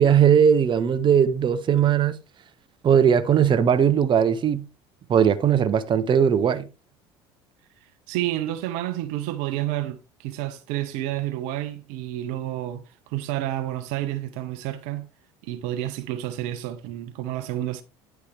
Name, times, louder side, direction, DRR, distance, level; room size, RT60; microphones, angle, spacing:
voice 1, 0.0-2.2 2.8-4.6 5.1-6.7, right 8 dB, 35° right, 0.9 m, -19 dB
voice 2, 7.8-15.1 15.4-17.8, right 13 dB, 65° right, 0.7 m, -30 dB
9.9 x 4.6 x 3.4 m
hypercardioid pair, 70°, 13 cm